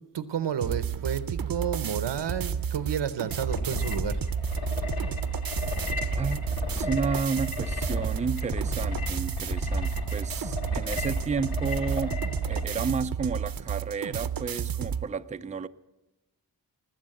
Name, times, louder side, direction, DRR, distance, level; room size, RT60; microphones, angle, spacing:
voice 1, 0.1-4.2, right 8 dB, 90° right, 0.9 m, -31 dB
sound 1, 0.6-15.1, right 8 dB, 55° right, 0.7 m, -32 dB
sound 2, 3.3-12.8, left 1 dB, 60° left, 2.0 m, -33 dB
voice 2, 6.1-15.7, right 5 dB, 20° right, 0.4 m, -32 dB
19.5 x 7.9 x 7.7 m
wide cardioid pair, 75°, 41 cm